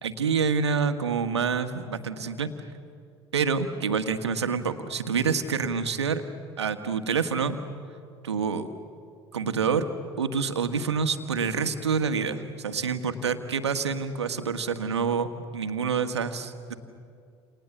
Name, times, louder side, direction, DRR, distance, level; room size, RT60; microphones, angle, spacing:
voice 1, 0.0-2.5 3.3-6.2 6.6-7.6 8.2-8.7 9.3-9.9 10.2-15.3 15.5-16.7, right 5 dB, 80° right, 9 dB, 1.6 m, -27 dB
29.0 x 29.0 x 7.2 m, 2.4 s
figure-of-eight pair, 65°, 14 cm